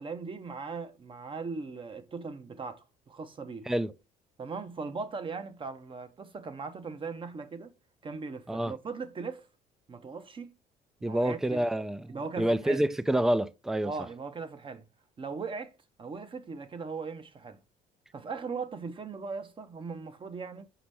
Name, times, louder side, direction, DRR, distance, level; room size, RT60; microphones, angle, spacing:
voice 1, 0.0-3.7 4.4-7.7 8.0-9.5 9.9-10.5 11.0-11.6 12.1-12.8 13.8-14.8 15.2-15.7 16.0-17.6 18.1-20.6, right 4 dB, 30° right, 0.8 m, -39 dB
voice 2, 11.0-13.9, right 1 dB, 5° right, 0.3 m, -28 dB
5.8 x 5.2 x 3.3 m
cardioid pair, 110°, 17 cm